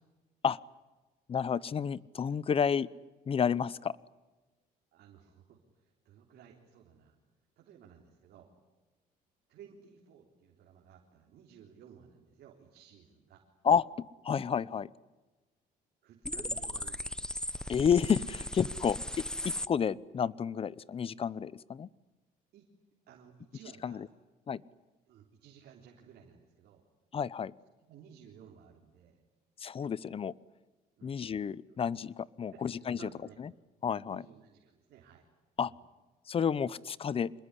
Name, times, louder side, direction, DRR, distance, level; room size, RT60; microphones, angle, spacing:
voice 1, 1.3-2.9 3.3-3.9 13.6-13.8 14.2-14.9 17.7-19.2 19.7-21.9 23.8-24.0 24.5-24.6 27.1-27.5 29.6-30.3 31.0-33.0 33.8-34.2 35.6-35.7 36.3-37.3, left 7 dB, 35° left, 21 dB, 0.8 m, -30 dB
voice 2, 4.9-7.2 7.6-8.5 9.5-13.4 16.0-17.2 22.5-22.7 23.1-24.1 25.1-26.8 27.8-29.2 31.0-31.2 31.7-31.8 32.4-33.4 34.0-35.3 35.6-35.8, right 8 dB, 70° right, 0 dB, 3.7 m, -56 dB
sound 1, 16.2-19.7, left 1 dB, 5° left, 0.9 m, -37 dB
26.5 x 21.0 x 10.0 m, 1.2 s
cardioid pair, 110°, 17 cm